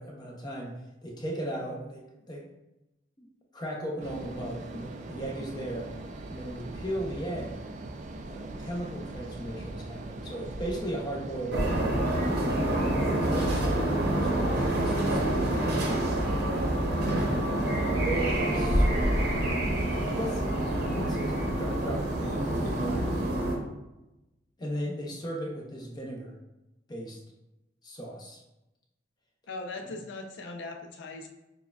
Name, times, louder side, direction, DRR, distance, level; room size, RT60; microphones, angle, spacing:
voice 1, 0.0-2.5 3.5-5.8 6.3-7.6 8.3-11.9 12.8-16.0 17.6-19.5 19.9-23.1 24.6-26.3 26.9-27.2 27.8-28.4, right 1 dB, 25° left, -1 dB, 0.6 m, -37 dB
sound 1, 4.0-23.3, right 2 dB, 40° right, 0.3 m, -40 dB
sound 2, 11.5-23.6, right 1 dB, 60° right, 0.8 m, -27 dB
voice 2, 12.6-13.1 29.5-31.3, left 2 dB, 80° left, 5 dB, 0.5 m, -40 dB
6.3 x 2.2 x 2.3 m, 0.98 s
head